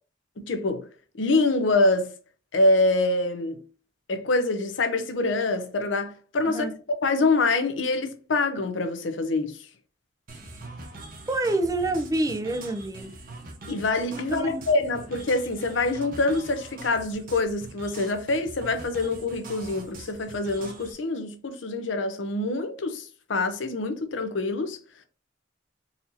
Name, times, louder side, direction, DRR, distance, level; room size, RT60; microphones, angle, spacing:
voice 1, 0.4-0.9 1.2-2.1 2.5-3.6 4.1-9.7 13.7-24.8, left 2 dB, 80° left, 0.7 m, -25 dB
sound 1, 10.3-20.9, right 2 dB, 50° right, 0.9 m, -43 dB
voice 2, 11.3-13.1 14.3-14.6, right 2 dB, 20° right, 0.5 m, -27 dB
4.1 x 2.8 x 2.7 m
head